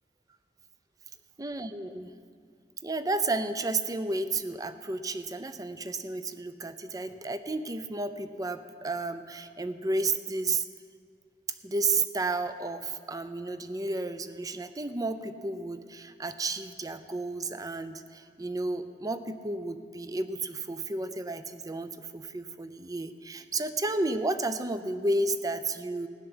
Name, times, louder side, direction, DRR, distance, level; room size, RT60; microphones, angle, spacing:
voice 1, 1.4-2.1 2.8-10.7 11.6-26.1, right 2 dB, 20° right, 11 dB, 0.5 m, -32 dB
15.5 x 7.0 x 9.6 m, 2.2 s
head